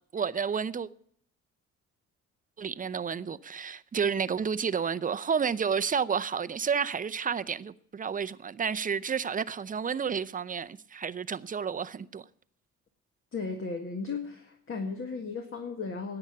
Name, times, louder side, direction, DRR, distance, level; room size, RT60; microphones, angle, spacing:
voice 1, 0.1-0.9 2.6-12.3, right 6 dB, 25° right, 0.6 m, -31 dB
voice 2, 13.3-16.2, left 4 dB, 45° left, 1.7 m, -35 dB
10.5 x 9.0 x 9.5 m
cardioid pair, 90°, 30 cm